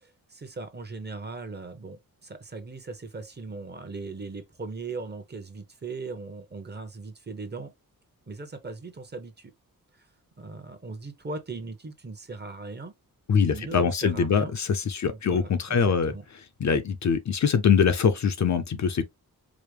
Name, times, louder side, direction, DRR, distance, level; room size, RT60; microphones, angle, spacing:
voice 1, 0.0-7.7 8.3-9.5 10.0-10.1 10.4-12.9 13.5-14.5 15.0-16.2, right 3 dB, 30° right, 0.9 m, -39 dB
voice 2, 13.3-16.1 16.6-19.0, left 6 dB, 50° left, 0.6 m, -23 dB
4.9 x 2.1 x 3.2 m
wide cardioid pair, 130°, 36 cm